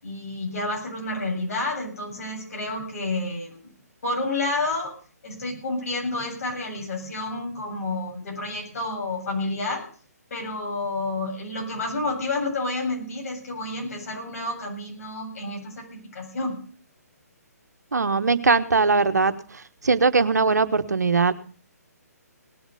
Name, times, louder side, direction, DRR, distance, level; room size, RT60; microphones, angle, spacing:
voice 1, 0.0-3.7 4.0-4.9 5.2-9.8 10.3-16.6, left 2 dB, 60° left, 0 dB, 7.5 m, -30 dB
voice 2, 17.9-19.3 19.8-21.3, right 4 dB, 80° right, 11 dB, 1.3 m, -20 dB
19.0 x 7.3 x 7.1 m, 0.42 s
figure-of-eight pair, 140°, 9 cm